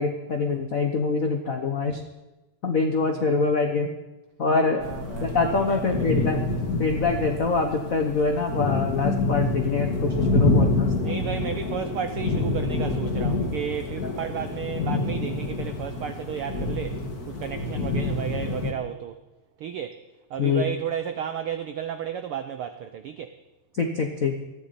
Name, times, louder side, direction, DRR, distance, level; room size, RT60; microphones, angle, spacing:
voice 1, 0.0-2.0 2.6-3.9 4.4-4.9 5.2-6.5 6.8-11.1 14.0-14.1 20.4-20.6 23.7-24.3, left 4 dB, 75° left, 4 dB, 0.7 m, -25 dB
voice 2, 3.1-3.5 4.7-6.2 11.0-17.0 17.3-19.2 19.6-20.0 20.3-23.3, right 9 dB, 85° right, 9 dB, 1.2 m, -33 dB
sound 1, 4.8-18.7, left 2 dB, 35° left, 1.9 m, -27 dB
20.0 x 14.5 x 4.2 m, 1.1 s
omnidirectional pair, 3.3 m